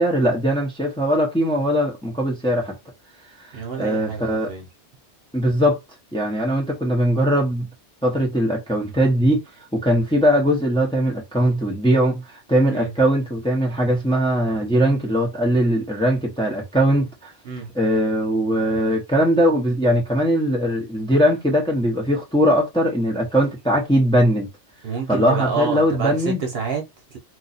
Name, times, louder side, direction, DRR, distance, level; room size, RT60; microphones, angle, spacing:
voice 1, 0.0-2.7 3.8-4.5 5.3-5.8 6.1-7.7 8.0-9.4 9.7-12.2 12.5-17.3 17.7-24.5 25.1-26.4, equal, 5° left, 0.8 m, -20 dB
voice 2, 3.5-4.7 12.7-12.9 17.4-17.7 24.8-27.2, right 5 dB, 60° right, 1.1 m, -29 dB
2.7 x 2.3 x 4.1 m
omnidirectional pair, 1.2 m